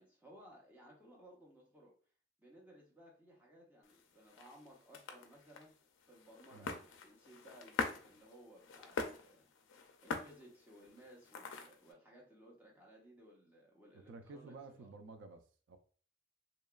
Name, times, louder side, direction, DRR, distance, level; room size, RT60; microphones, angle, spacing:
voice 1, 0.0-1.9 2.4-5.7 6.1-9.5 9.8-14.9, equal, 10° right, -3 dB, 0.7 m, -60 dB
sound 1, 3.8-11.9, left 4 dB, 75° left, 0.4 m, -45 dB
voice 2, 13.9-15.8, right 3 dB, 75° right, 7 dB, 0.3 m, -53 dB
2.9 x 2.3 x 2.2 m, 0.43 s
head